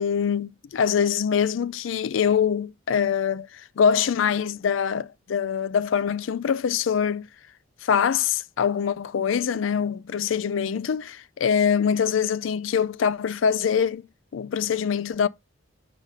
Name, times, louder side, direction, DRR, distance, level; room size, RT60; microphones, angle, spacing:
voice 1, 0.0-7.3 7.8-14.1 14.3-15.3, left 7 dB, 70° left, 0.4 m, -24 dB
5.1 x 5.0 x 5.4 m
head